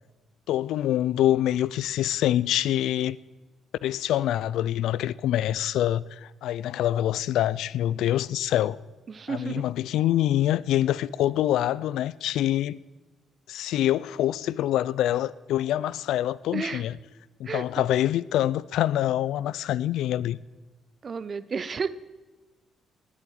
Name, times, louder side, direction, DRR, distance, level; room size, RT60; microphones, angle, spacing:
voice 1, 0.5-3.2 3.8-8.8 9.3-12.8 13.5-17.0 17.4-20.4, left 12 dB, 85° left, 0.4 m, -25 dB
voice 2, 9.1-9.6 16.5-16.8 17.5-17.9 21.0-21.9, right 5 dB, 40° right, 0.8 m, -32 dB
19.5 x 8.5 x 8.9 m
cardioid pair, 90°, 0 cm